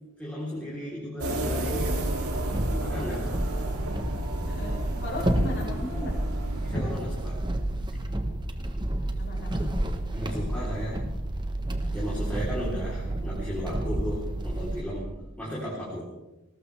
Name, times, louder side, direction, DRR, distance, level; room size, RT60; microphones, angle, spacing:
voice 1, 0.2-2.1 2.7-3.4 6.7-7.6 7.9-8.0 10.1-11.1 11.9-16.1, equal, 5° left, -7 dB, 3.9 m, -35 dB
sound 1, 1.2-6.7, right 1 dB, 90° right, 3.2 m, -32 dB
sound 2, 1.8-14.8, right 1 dB, 20° right, 1.3 m, -30 dB
voice 2, 4.4-4.7 5.0-6.9 9.2-9.6, left 1 dB, 55° left, -6 dB, 4.7 m, -36 dB
20.5 x 19.0 x 3.5 m, 0.96 s
head